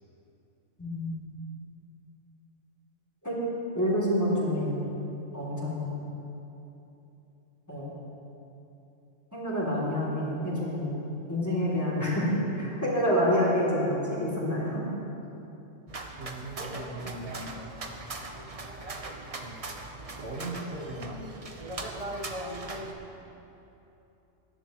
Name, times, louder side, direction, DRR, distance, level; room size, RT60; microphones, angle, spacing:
voice 1, 0.8-1.2 3.2-3.4 3.7-4.8 5.3-5.9 7.7-7.9 9.3-14.9, equal, 15° left, -6 dB, 3.0 m, -28 dB
sound 1, 15.9-22.9, right 2 dB, 30° right, 0.8 m, -39 dB
voice 2, 16.1-17.9 19.4-19.6 20.2-21.4 22.7-23.4, right 1 dB, 50° right, -5 dB, 1.8 m, -41 dB
21.0 x 10.5 x 3.1 m, 3.0 s
omnidirectional pair, 1.3 m